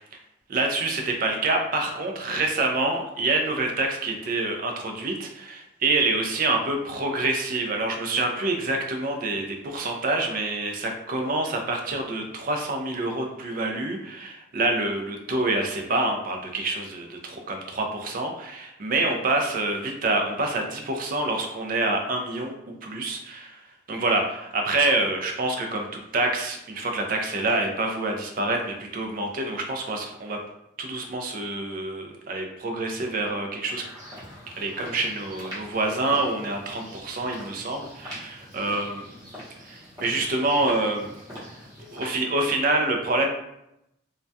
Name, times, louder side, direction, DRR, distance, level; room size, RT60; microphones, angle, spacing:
voice 1, 0.5-22.5 22.8-23.6 23.9-30.4 30.8-33.8 34.6-39.0 39.6-41.1 41.4-41.5 41.9-43.3, right 2 dB, 45° right, 3 dB, 0.4 m, -27 dB
sound 1, 33.6-42.1, equal, 20° right, 0.8 m, -43 dB
2.2 x 2.2 x 2.6 m, 0.83 s
head